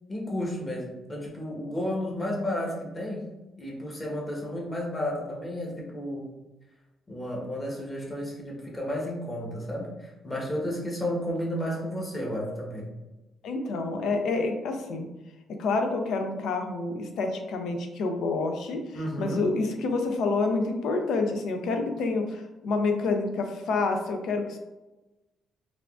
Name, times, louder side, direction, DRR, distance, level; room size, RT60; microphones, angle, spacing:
voice 1, 0.1-3.3 3.6-6.3 7.1-12.9 18.9-19.5, left 1 dB, 25° left, -2 dB, 1.0 m, -32 dB
voice 2, 13.4-15.1 15.6-24.6, left 3 dB, 75° left, 5 dB, 0.4 m, -28 dB
3.4 x 2.4 x 2.4 m, 1.0 s
cardioid pair, 90°, 0 cm